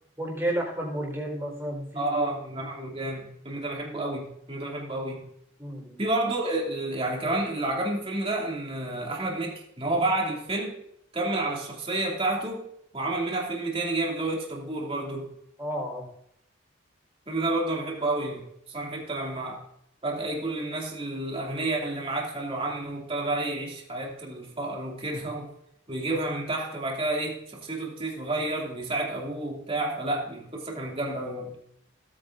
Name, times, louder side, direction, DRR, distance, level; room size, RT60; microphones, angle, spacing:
voice 1, 0.2-2.2 5.6-6.0 15.6-16.1, right 1 dB, 15° right, -1 dB, 4.3 m, -31 dB
voice 2, 1.9-5.2 6.0-10.8 11.1-12.7 12.9-15.3 17.3-19.6 20.0-25.5 25.9-31.5, right 2 dB, 30° right, -1 dB, 2.7 m, -30 dB
17.5 x 9.3 x 2.6 m, 0.73 s
head